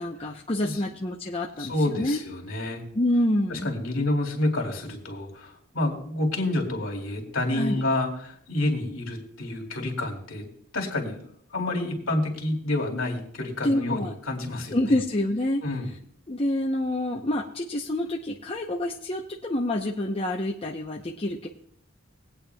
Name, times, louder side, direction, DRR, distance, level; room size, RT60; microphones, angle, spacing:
voice 1, 0.0-2.2 2.9-3.7 7.5-7.8 13.6-14.1 14.7-15.6 16.3-21.5, left 1 dB, 30° left, 0 dB, 0.7 m, -27 dB
voice 2, 0.6-0.9 1.6-2.8 3.5-10.4 10.7-11.2 11.5-15.0 15.6-15.9, left 2 dB, 70° left, 0 dB, 2.5 m, -29 dB
21.0 x 8.7 x 2.3 m, 0.66 s
head